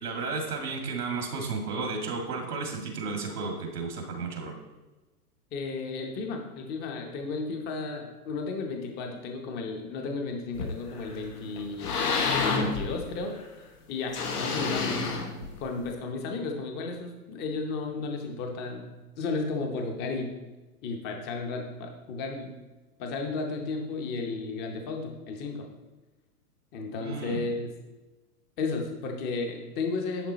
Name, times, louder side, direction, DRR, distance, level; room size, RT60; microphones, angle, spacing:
voice 1, 0.0-4.5 27.0-27.4, right 4 dB, 90° right, 2 dB, 1.8 m, -33 dB
voice 2, 5.5-12.0 12.4-13.3 13.9-15.0 15.6-18.9 19.2-20.3 20.8-22.5 23.0-25.7 26.7-27.7 28.6-30.3, left 3 dB, 20° left, 3 dB, 0.7 m, -33 dB
sound 1, 10.5-11.2 11.6-13.4 14.1-15.9, left 4 dB, 80° left, 1.3 m, -29 dB
10.5 x 3.6 x 4.1 m, 1.2 s
hypercardioid pair, 130°, 46 cm